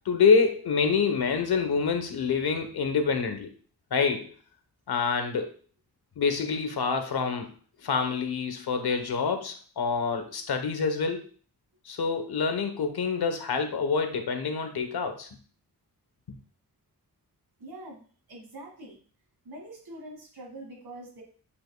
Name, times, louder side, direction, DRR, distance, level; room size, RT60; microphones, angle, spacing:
voice 1, 0.0-3.5 3.9-4.3 4.9-5.5 6.2-7.5 7.8-11.3 11.8-15.3 16.3-16.4, left 5 dB, 75° left, 7 dB, 1.1 m, -26 dB
voice 2, 17.6-19.0 19.4-21.2, right 1 dB, 75° right, -1 dB, 1.9 m, -44 dB
8.5 x 5.5 x 2.3 m, 0.42 s
wide cardioid pair, 150°, 38 cm